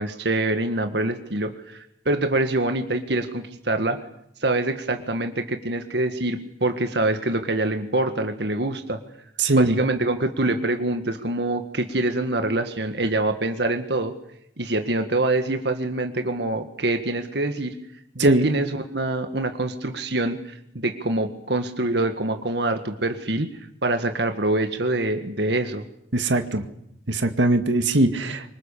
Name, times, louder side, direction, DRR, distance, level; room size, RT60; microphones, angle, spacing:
voice 1, 0.0-4.0 4.4-9.0 9.5-14.1 14.6-17.8 18.2-23.5 23.8-25.8, right 2 dB, 65° right, 7 dB, 1.8 m, -25 dB
voice 2, 9.4-9.8 18.2-18.5 26.1-26.6 27.1-28.5, right 2 dB, 80° right, 7 dB, 2.1 m, -20 dB
26.5 x 25.0 x 6.9 m, 0.75 s
head